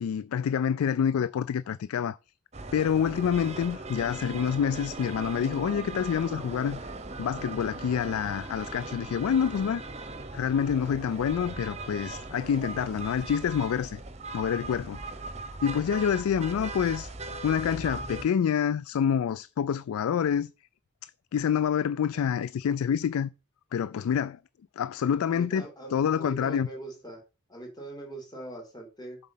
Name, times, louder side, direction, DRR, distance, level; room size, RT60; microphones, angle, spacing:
voice 1, 0.0-2.2 2.7-6.9 7.2-9.8 10.3-14.0 14.3-15.0 15.6-17.1 17.4-20.5 21.3-23.3 23.7-24.4 24.8-25.6 25.9-26.7, left 8 dB, 90° left, 0.3 m, -27 dB
sound 1, 2.5-18.3, right 3 dB, 30° right, 0.9 m, -39 dB
voice 2, 25.2-27.2 27.5-29.2, right 2 dB, 20° left, 2.6 m, -42 dB
7.4 x 5.1 x 5.6 m
head